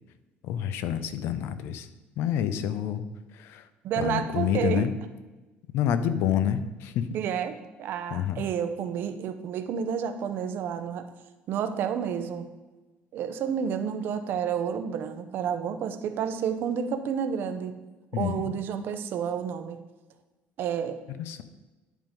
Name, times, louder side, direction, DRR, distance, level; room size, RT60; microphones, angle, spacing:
voice 1, 0.4-1.9 2.2-3.0 3.3-3.7 4.0-4.9 5.7-7.1 8.1-8.4 18.1-18.6 21.2-21.4, left 10 dB, 70° left, 12 dB, 0.5 m, -28 dB
voice 2, 3.8-4.9 7.1-11.1 11.5-12.5 13.1-17.7 18.1-19.8 20.6-21.0, right 7 dB, 55° right, 9 dB, 0.6 m, -30 dB
10.0 x 3.7 x 5.1 m, 1.2 s
cardioid pair, 155°, 4 cm